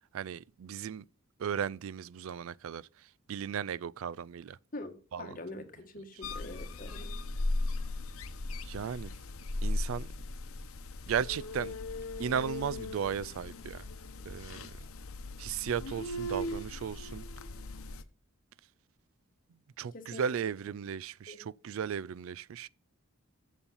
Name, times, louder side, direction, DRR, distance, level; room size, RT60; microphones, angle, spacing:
voice 1, 0.1-1.1 1.4-4.6 5.1-5.4 8.6-9.1 9.6-10.1 11.1-11.8 12.2-13.9 14.3-14.9 15.4-17.2 19.8-22.7, right 7 dB, 75° right, 0.3 m, -36 dB
voice 2, 4.7-7.2 19.9-20.2 21.3-21.6, left 2 dB, 40° left, 1.4 m, -44 dB
sound 1, 6.2-18.0, left 2 dB, 85° left, 0.8 m, -38 dB
7.1 x 7.0 x 5.5 m
head